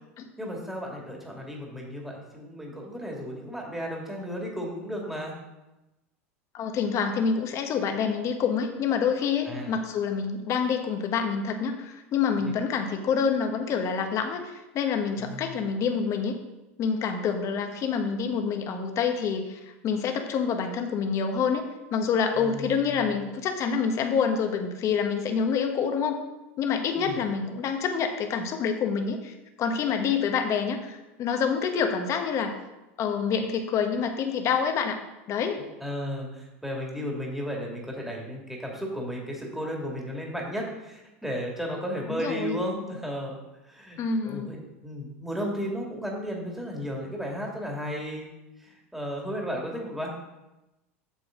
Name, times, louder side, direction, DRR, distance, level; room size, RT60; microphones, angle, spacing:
voice 1, 0.4-5.4 9.5-9.7 12.4-12.5 15.2-15.6 22.3-23.1 27.0-27.2 35.8-43.4 43.6-44.6 44.8-48.3 48.6-50.1, equal, 5° right, -2 dB, 2.3 m, -34 dB
voice 2, 6.5-16.4 16.8-26.2 26.6-32.5 33.0-35.0 35.3-35.6 42.1-42.6 44.0-44.5, left 6 dB, 45° left, 5 dB, 1.3 m, -27 dB
8.3 x 7.0 x 3.8 m, 1.0 s
hypercardioid pair, 95°, 7 cm